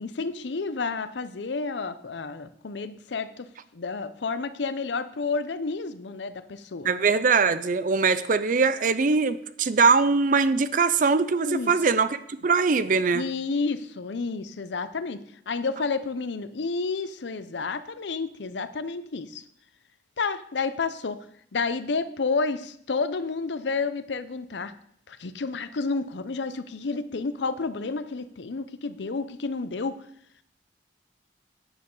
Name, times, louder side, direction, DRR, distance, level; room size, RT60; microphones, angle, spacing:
voice 1, 0.0-6.9 11.4-11.7 13.1-15.2 15.5-19.4 20.2-21.2 21.5-24.7 25.1-30.0, left 4 dB, 80° left, 13 dB, 0.6 m, -30 dB
voice 2, 6.8-13.2, right 4 dB, 45° right, 14 dB, 0.5 m, -22 dB
10.5 x 9.2 x 3.8 m, 0.67 s
head